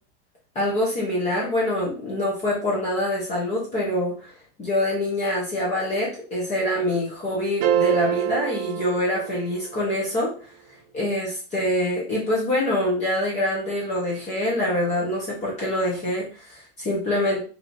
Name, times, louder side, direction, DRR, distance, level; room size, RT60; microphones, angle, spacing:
voice 1, 0.5-4.3 4.6-10.3 10.9-17.5, left 1 dB, 25° left, -4 dB, 1.2 m, -25 dB
sound 1, 7.6-9.9, right 10 dB, 45° right, 0.5 m, -25 dB
3.1 x 3.0 x 4.0 m, 0.37 s
supercardioid pair, 170°, 30 cm